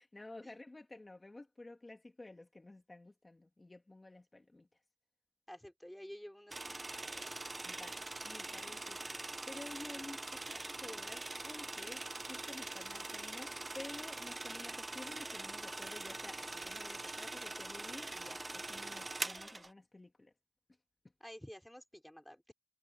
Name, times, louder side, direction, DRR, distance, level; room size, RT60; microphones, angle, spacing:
voice 1, 0.0-4.7 7.6-20.3, left 2 dB, 45° left, 2.8 m, -52 dB
voice 2, 5.5-6.6 7.0-7.3 21.2-22.5, equal, 10° left, 4.3 m, -51 dB
sound 1, 6.5-19.7, right 2 dB, 45° right, 0.7 m, -43 dB
wide cardioid pair, 65°, 0 cm